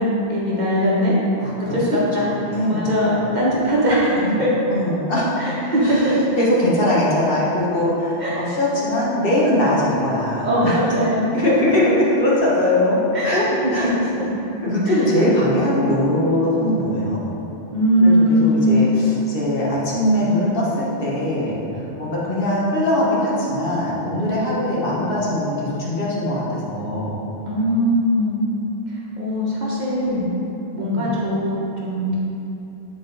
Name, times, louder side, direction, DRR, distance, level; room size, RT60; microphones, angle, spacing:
voice 1, 0.0-2.3 2.6-4.5 5.4-6.2 8.2-8.4 10.4-11.3 13.1-13.5 13.8-13.9 14.2-14.3 14.9-15.0 17.7-18.8 27.5-28.4 28.9-30.3 30.7-32.2, equal, 45° right, -6 dB, 1.1 m, -20 dB
voice 2, 1.4-2.0 2.5-2.9 4.2-4.4 4.7-5.3 5.8-10.8 11.3-13.0 13.2-13.4 13.7-13.9 14.6-17.2 18.0-27.1 30.9-31.1, left 1 dB, 55° left, -6 dB, 1.4 m, -21 dB
7.8 x 3.8 x 3.9 m, 2.9 s
omnidirectional pair, 1.1 m